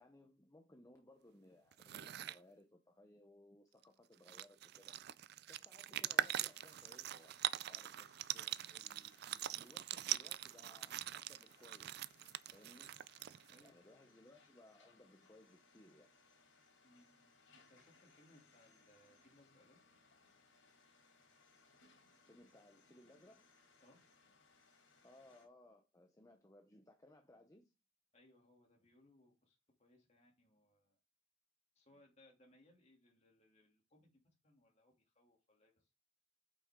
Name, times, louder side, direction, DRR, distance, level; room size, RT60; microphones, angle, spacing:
voice 1, 0.0-4.9 5.5-12.0 12.5-12.9 13.6-16.1 22.3-23.5 25.0-27.7, left 1 dB, 15° left, 0.8 m, -63 dB
sound 1, 1.7-2.4 3.8-3.9 4.1-13.7, right 12 dB, 55° right, 0.4 m, -42 dB
sound 2, 6.0-25.5, left 4 dB, 85° left, 4.0 m, -69 dB
voice 2, 13.5-14.1 16.8-17.3 17.5-19.8 23.8-24.0 28.1-31.0 31.7-34.1 34.4-35.9, left 1 dB, 35° left, 3.0 m, -69 dB
8.4 x 6.0 x 3.8 m
head